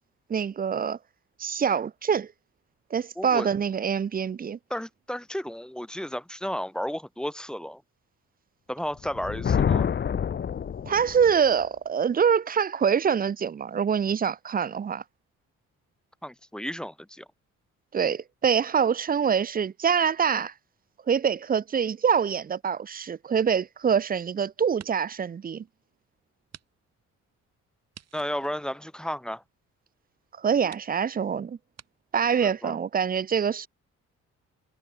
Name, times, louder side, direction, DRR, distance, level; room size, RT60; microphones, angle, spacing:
voice 1, 0.3-1.0 1.4-2.3 2.9-4.6 10.9-15.0 17.9-20.5 21.1-25.6 30.4-31.6 32.1-33.7, right 7 dB, 30° right, 0.6 m, -25 dB
voice 2, 3.2-3.5 4.7-7.8 8.7-9.9 16.2-17.3 28.1-29.4 32.4-32.8, equal, 5° left, 1.9 m, -33 dB
Thunder, 9.0-11.4, left 7 dB, 35° left, 0.8 m, -27 dB
sound 1, 23.3-24.2 24.6-25.2 25.6-25.7 26.5-26.7 26.9-27.0 27.9-29.5 30.2-30.3 30.7-30.9 31.7-31.9, right 9 dB, 60° right, 4.6 m, -51 dB
cardioid pair, 90°, 30 cm